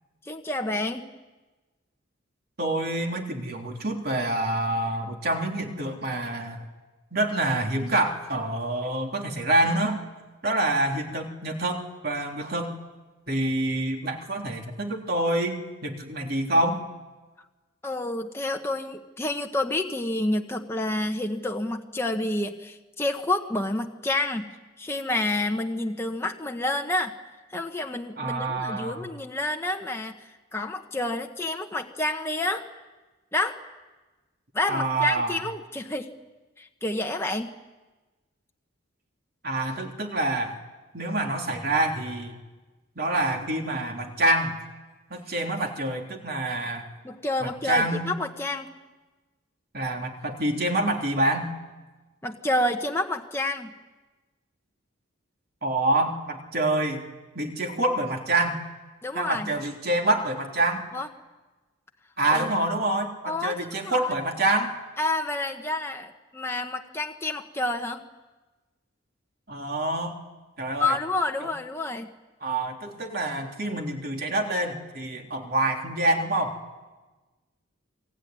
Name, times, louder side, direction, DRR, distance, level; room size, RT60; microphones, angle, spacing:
voice 1, 0.2-1.1 17.8-24.5 24.8-27.2 27.5-32.6 33.3-33.6 34.5-36.1 36.6-37.5 47.0-48.7 52.2-53.7 59.0-59.5 60.9-61.1 62.3-62.5 63.3-64.0 65.0-68.0 70.8-72.1, left 2 dB, 10° left, 2 dB, 1.2 m, -29 dB
voice 2, 2.6-6.7 7.1-10.0 10.4-12.7 13.3-16.8 28.2-29.0 34.7-35.4 39.4-40.6 40.9-42.3 43.0-44.5 45.1-46.9 47.4-48.2 49.7-51.6 55.6-57.0 57.4-58.6 59.1-60.8 62.2-64.7 69.5-70.1 70.6-71.0 71.4-71.5 72.4-76.5, right 1 dB, 50° right, 2 dB, 3.5 m, -26 dB
28.0 x 21.0 x 9.6 m, 1.2 s
head